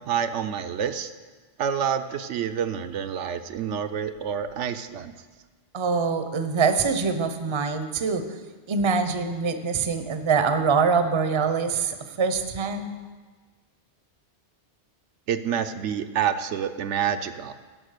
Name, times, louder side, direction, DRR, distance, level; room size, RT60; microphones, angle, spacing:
voice 1, 0.1-1.1 1.6-5.1 15.3-17.5, right 8 dB, 85° right, 8 dB, 0.9 m, -28 dB
voice 2, 5.7-8.2 8.7-12.9, right 5 dB, 35° right, 9 dB, 0.6 m, -24 dB
11.0 x 6.1 x 6.5 m, 1.3 s
omnidirectional pair, 1.2 m